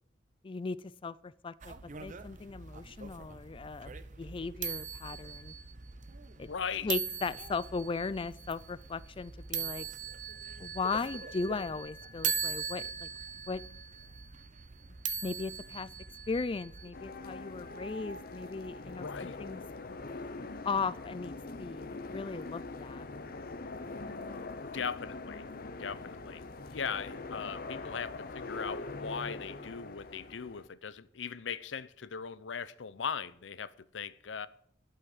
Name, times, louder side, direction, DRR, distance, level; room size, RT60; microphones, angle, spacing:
voice 1, 0.4-1.7 2.0-3.9 4.2-5.5 6.4-6.5 6.8-9.9 10.6-13.1 13.5-13.6 15.2-15.9 16.3-19.6 20.6-21.3 21.6-23.1, left 4 dB, 30° left, 0.4 m, -37 dB
sound 1, 1.6-16.9, right 6 dB, 45° right, 0.8 m, -40 dB
voice 2, 6.4-6.9 18.9-19.4 24.5-25.4 25.8-34.5, left 6 dB, 90° left, 0.6 m, -39 dB
sound 2, 16.9-30.7, left 3 dB, 55° left, 0.8 m, -43 dB
11.5 x 5.6 x 8.7 m
head